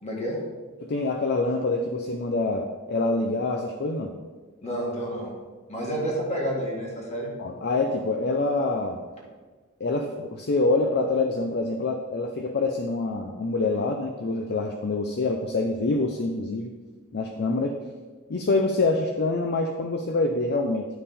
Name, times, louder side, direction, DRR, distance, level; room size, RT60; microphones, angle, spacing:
voice 1, 0.0-0.4 4.6-5.3 5.7-7.3, equal, 30° left, -2 dB, 1.9 m, -29 dB
voice 2, 0.9-4.1 7.4-9.0 9.8-16.7 17.1-17.8 18.3-20.9, left 3 dB, 50° left, 4 dB, 0.5 m, -26 dB
10.0 x 5.5 x 4.2 m, 1.4 s
head